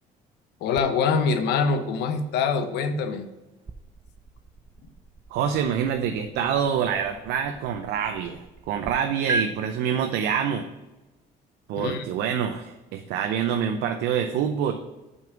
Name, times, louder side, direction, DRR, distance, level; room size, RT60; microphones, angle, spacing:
voice 1, 0.6-3.3 11.7-12.0, left 5 dB, 80° left, 8 dB, 0.8 m, -24 dB
sound 1, 0.7-8.9 9.3-9.4, right 2 dB, 25° right, 0.5 m, -38 dB
voice 2, 5.3-10.7 11.7-14.7, right 8 dB, 85° right, 6 dB, 0.6 m, -26 dB
5.9 x 5.4 x 5.9 m, 1.1 s
cardioid pair, 110°, 17 cm